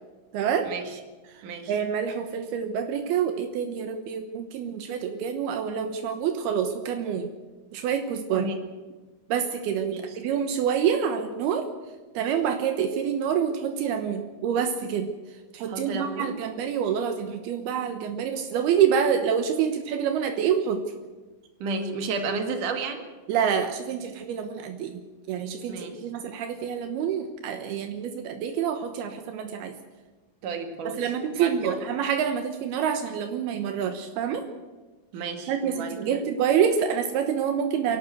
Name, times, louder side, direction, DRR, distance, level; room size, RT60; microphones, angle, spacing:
voice 1, 0.3-0.7 1.7-7.3 7.7-8.5 9.3-11.7 12.1-15.1 15.5-20.8 23.3-29.8 30.8-34.5 35.5-38.0, right 8 dB, 80° right, 6 dB, 3.1 m, -27 dB
voice 2, 15.7-16.4 21.6-23.0 25.7-26.0 30.4-31.0 31.4-31.8 35.1-36.2, right 4 dB, 60° right, 5 dB, 3.4 m, -32 dB
28.0 x 12.0 x 8.0 m, 1.3 s
omnidirectional pair, 4.5 m